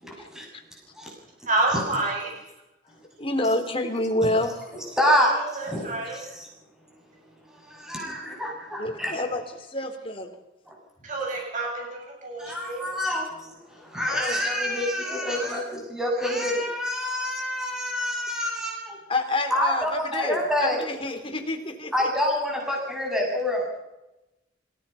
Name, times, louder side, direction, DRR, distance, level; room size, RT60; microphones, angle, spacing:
voice 1, 0.0-0.5 1.0-1.1 1.7-1.8 3.4-3.5 4.2-4.3 5.0-6.5 7.5-9.1 10.7-10.8 12.4-19.0 19.5-20.8 21.9-23.7, left 1 dB, 5° right, -2 dB, 6.9 m, -27 dB
voice 2, 1.5-2.3 5.2-6.2 11.0-12.8 15.1-15.5, right 2 dB, 45° right, -1 dB, 7.6 m, -29 dB
voice 3, 3.2-4.6 6.1-6.2 8.0-8.1 8.8-10.3 12.5-12.6 14.0-14.4 19.1-22.1, left 2 dB, 30° left, 4 dB, 3.5 m, -28 dB
27.0 x 17.0 x 5.8 m, 0.96 s
head